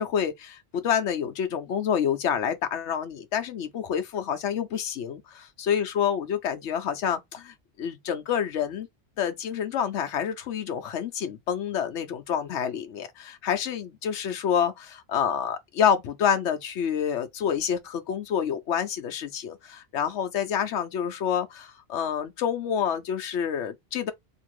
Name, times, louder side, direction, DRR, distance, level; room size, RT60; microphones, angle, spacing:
voice 1, 0.0-8.9 9.2-24.1, left 8 dB, 80° left, 1.0 m, -28 dB
2.9 x 2.6 x 2.9 m
omnidirectional pair, 1.2 m